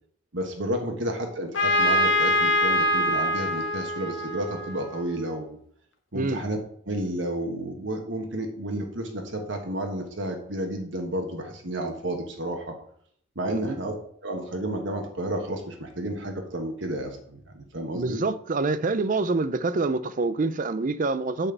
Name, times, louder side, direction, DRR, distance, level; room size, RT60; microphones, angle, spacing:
voice 1, 0.3-5.6 6.1-6.6 6.9-12.7 13.3-13.9 14.2-18.2, right 1 dB, 65° right, 1.4 m, -31 dB
Trumpet, 1.5-5.3, left 1 dB, 65° left, 1.4 m, -24 dB
voice 2, 17.9-21.5, right 3 dB, 40° right, 0.4 m, -26 dB
8.8 x 4.3 x 6.8 m
head